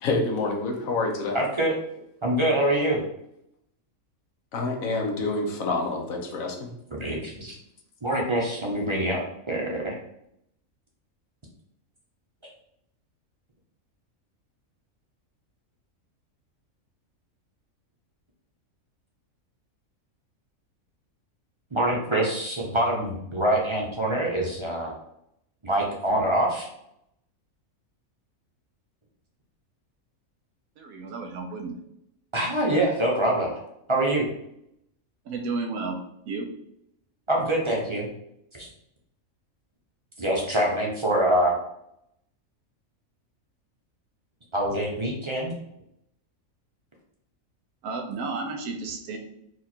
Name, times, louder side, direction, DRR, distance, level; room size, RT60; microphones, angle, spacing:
voice 1, 0.0-1.4 4.5-6.7, left 3 dB, 80° left, 1 dB, 1.3 m, -27 dB
voice 2, 1.3-1.7 2.2-3.0 6.9-7.5 8.0-9.9 21.7-24.9 25.6-26.7 32.3-33.6 33.9-34.2 37.3-38.1 38.5-38.7 40.2-41.5 44.5-45.5, right 1 dB, 25° right, -2 dB, 0.7 m, -25 dB
voice 3, 30.8-31.7 35.3-36.0 36.3-36.5 47.8-49.2, right 4 dB, 90° right, 3 dB, 1.1 m, -32 dB
4.5 x 2.5 x 4.3 m, 0.76 s
omnidirectional pair, 1.4 m